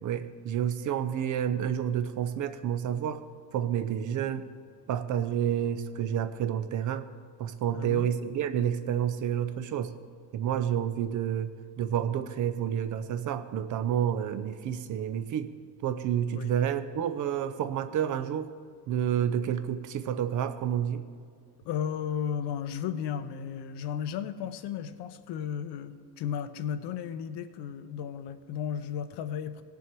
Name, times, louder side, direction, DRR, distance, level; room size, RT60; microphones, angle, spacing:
voice 1, 0.0-3.2 3.5-4.5 4.9-7.0 7.4-9.9 10.3-11.5 11.8-15.5 15.8-18.5 18.9-21.0, right 9 dB, 45° right, 11 dB, 0.5 m, -29 dB
voice 2, 7.7-8.1 16.3-16.5 21.6-29.6, left 8 dB, 65° left, 11 dB, 0.8 m, -34 dB
18.5 x 7.0 x 4.6 m, 2.2 s
cardioid pair, 160°, 44 cm